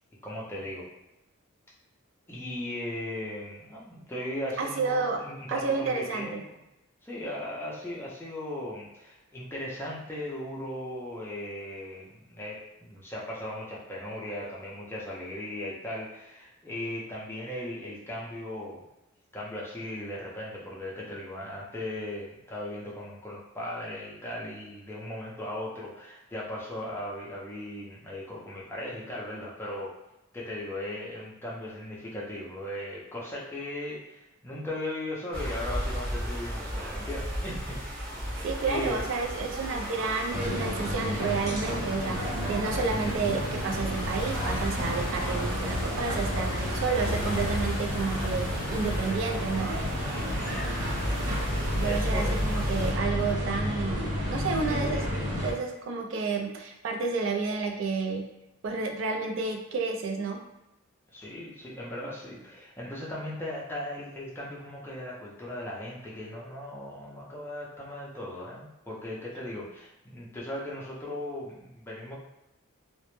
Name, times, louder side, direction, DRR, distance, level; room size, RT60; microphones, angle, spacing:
voice 1, 0.2-0.9 2.3-6.4 7.0-18.8 19.3-29.9 30.3-38.2 38.6-39.0 50.1-50.9 51.8-52.4 61.1-72.1, left 1 dB, 10° left, -6 dB, 0.4 m, -37 dB
voice 2, 4.6-5.2 5.5-6.4 38.4-49.8 51.7-58.2 58.6-60.4, right 4 dB, 55° right, 3 dB, 0.3 m, -31 dB
sound 1, 35.3-52.9, equal, 40° right, 0.7 m, -36 dB
sound 2, 40.3-55.5, equal, 85° right, 0.9 m, -31 dB
sound 3, 43.9-49.1, left 1 dB, 75° left, 0.5 m, -35 dB
2.0 x 2.0 x 2.9 m, 0.94 s
head